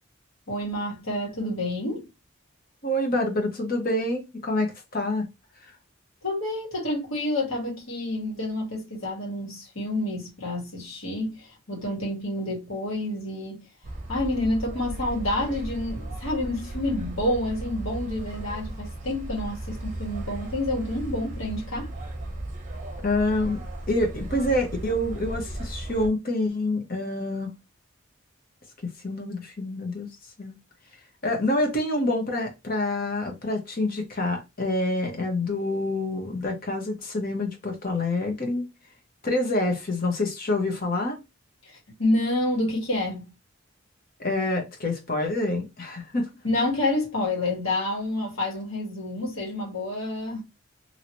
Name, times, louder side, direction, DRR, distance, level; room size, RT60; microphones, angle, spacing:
voice 1, 0.5-2.1 6.2-13.6 14.1-21.9 41.7-43.3 46.4-50.4, left 1 dB, 75° left, 1.7 m, -28 dB
voice 2, 2.8-5.3 23.0-27.5 28.8-30.1 30.4-30.6 31.2-38.7 39.2-41.2 44.2-46.3, left 2 dB, 40° left, 1.0 m, -27 dB
sound 1, 13.8-26.1, right 1 dB, 35° right, 0.7 m, -36 dB
2.9 x 2.8 x 2.9 m
head